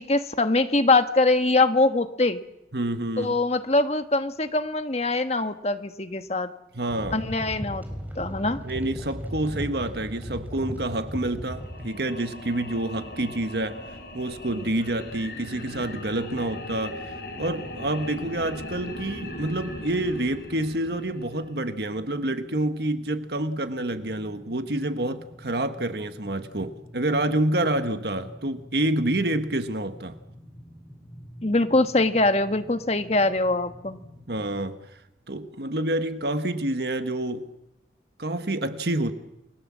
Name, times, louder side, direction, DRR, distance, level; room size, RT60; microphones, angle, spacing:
voice 1, 0.0-2.4 3.2-6.5 7.1-7.8 8.2-8.6 31.4-34.0, left 2 dB, 35° left, 1.4 m, -23 dB
voice 2, 2.7-3.4 6.7-7.2 8.6-13.8 14.1-17.0 17.4-30.2 34.3-34.9 35.3-37.5 38.2-39.1, right 1 dB, 65° right, 1.4 m, -28 dB
sound 1, 6.9-11.9, equal, 10° right, 3.9 m, -36 dB
sound 2, 11.4-21.8, left 1 dB, 60° left, 5.9 m, -39 dB
sound 3, 17.5-34.7, equal, 10° left, 3.9 m, -48 dB
29.5 x 21.0 x 7.5 m
head